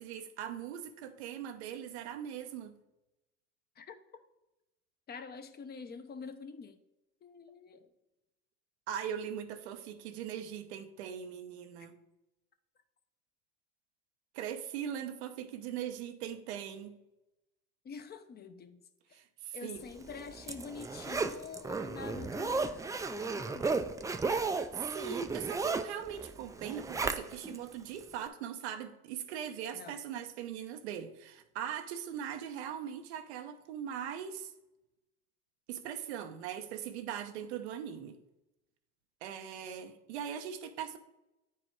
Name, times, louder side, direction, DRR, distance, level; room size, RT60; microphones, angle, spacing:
voice 1, 0.0-2.7 8.9-12.0 14.3-17.0 19.1-19.8 24.7-34.5 35.7-38.2 39.2-41.0, right 9 dB, 85° right, 0.9 m, -40 dB
voice 2, 5.1-6.8 7.2-7.9 17.8-18.8 19.5-24.0 29.7-30.0, left 5 dB, 30° left, 0.7 m, -46 dB
Zipper (clothing), 20.0-27.6 28.0-28.1, right 4 dB, 10° right, 0.4 m, -34 dB
8.8 x 4.8 x 4.6 m
supercardioid pair, 100°, 33 cm